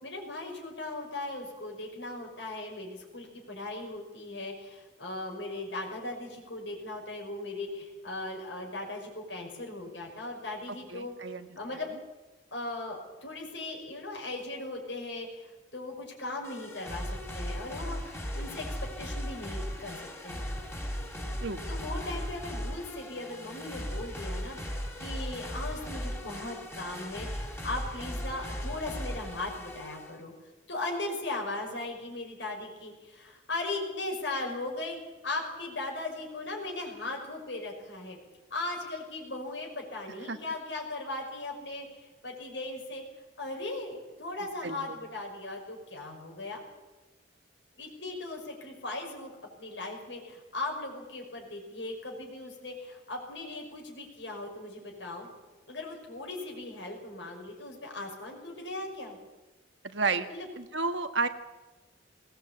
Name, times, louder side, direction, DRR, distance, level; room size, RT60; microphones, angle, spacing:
voice 1, 0.0-11.1 11.5-11.9 12.5-20.5 21.7-30.3 30.7-35.0 35.2-38.2 38.5-43.0 43.4-46.6 47.8-49.3 49.6-55.3 55.7-59.2 60.3-60.5, left 2 dB, 80° left, 0 dB, 5.7 m, -38 dB
voice 2, 10.9-11.5 21.4-21.6 40.3-40.4 44.6-45.0 59.8-60.3 60.6-61.3, right 4 dB, 85° right, 8 dB, 1.6 m, -31 dB
sound 1, 16.4-30.2, equal, 15° left, 3.4 m, -37 dB
20.0 x 18.0 x 8.7 m, 1.1 s
head